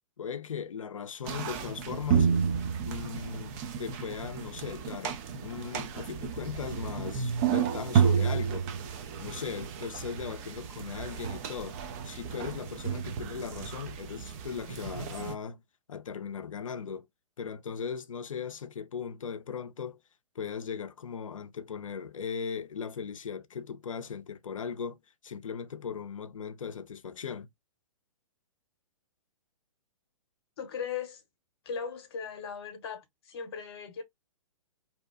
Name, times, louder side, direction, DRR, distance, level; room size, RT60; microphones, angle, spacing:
voice 1, 0.2-2.3 2.8-8.7 9.2-11.8 12.0-15.6 15.9-17.1 17.4-20.0 20.4-27.5, left 6 dB, 75° left, 0.5 m, -38 dB
sound 1, 1.3-15.3, right 7 dB, 30° right, 0.5 m, -31 dB
voice 2, 30.6-31.2 31.6-34.0, left 6 dB, 50° left, 0.9 m, -38 dB
2.7 x 2.1 x 2.4 m
figure-of-eight pair, 120°, 17 cm